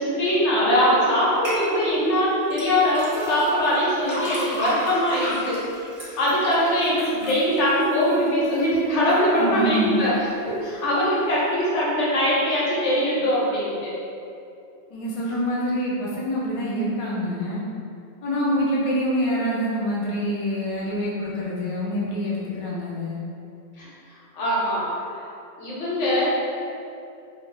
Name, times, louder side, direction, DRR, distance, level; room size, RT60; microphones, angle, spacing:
voice 1, 0.0-5.6 6.2-10.1 10.6-13.9 23.8-23.9 24.3-24.8 25.1-25.3 25.6-26.3, equal, 85° left, -7 dB, 1.1 m, -22 dB
sound 1, 1.4-1.6 2.5-8.6 9.1-9.6 10.1-10.2, equal, 25° right, 0.8 m, -33 dB
voice 2, 9.4-10.0 14.9-17.6 18.2-23.2, equal, 45° left, -6 dB, 0.4 m, -26 dB
2.3 x 2.0 x 3.6 m, 2.6 s
omnidirectional pair, 1.2 m